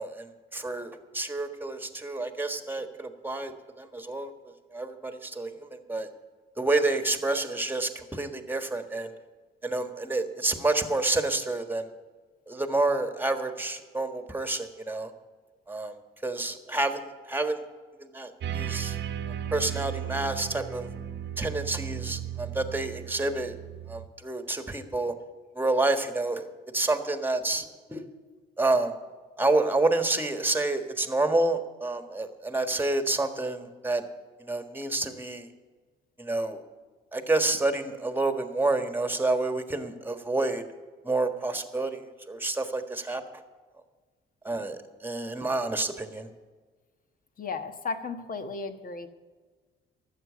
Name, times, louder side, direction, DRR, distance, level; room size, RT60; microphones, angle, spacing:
voice 1, 0.0-4.3 4.7-6.1 6.6-9.1 9.6-11.9 12.5-15.1 15.7-15.9 16.2-17.6 18.0-19.0 19.5-20.9 21.4-23.5 23.9-25.1 25.5-26.5 26.7-28.0 28.6-28.9 29.4-34.1 34.4-35.5 36.2-36.6 37.1-40.6 41.0-43.2 44.4-46.3, right 2 dB, 10° right, 8 dB, 1.5 m, -29 dB
sound 1, 18.4-24.1, right 10 dB, 65° right, 1.1 m, -35 dB
voice 2, 47.4-49.1, left 4 dB, 45° left, 8 dB, 1.4 m, -34 dB
12.5 x 7.8 x 9.4 m, 1.4 s
cardioid pair, 90°, 20 cm